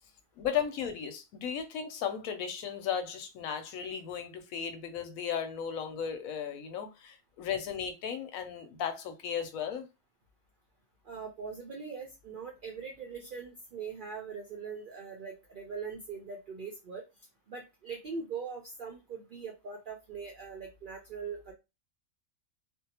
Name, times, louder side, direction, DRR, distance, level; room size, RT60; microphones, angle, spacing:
voice 1, 0.4-9.9, left 8 dB, 90° left, 1.0 m, -35 dB
voice 2, 11.0-17.0 17.5-21.5, right 5 dB, 70° right, 0.4 m, -41 dB
2.6 x 2.0 x 2.8 m
omnidirectional pair, 1.4 m